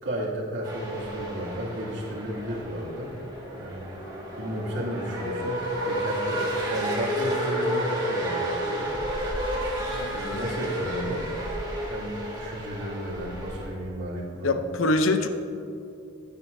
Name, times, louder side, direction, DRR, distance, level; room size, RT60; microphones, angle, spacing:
voice 1, 0.0-3.1 3.5-3.9 4.4-8.9 10.1-11.3 11.9-14.6, equal, 60° right, -7 dB, 2.6 m, -33 dB
sound 1, 0.6-13.7, right 1 dB, 20° right, 1.9 m, -31 dB
voice 2, 14.4-15.3, left 2 dB, 75° left, 8 dB, 0.7 m, -24 dB
15.5 x 9.5 x 2.7 m, 2.7 s
head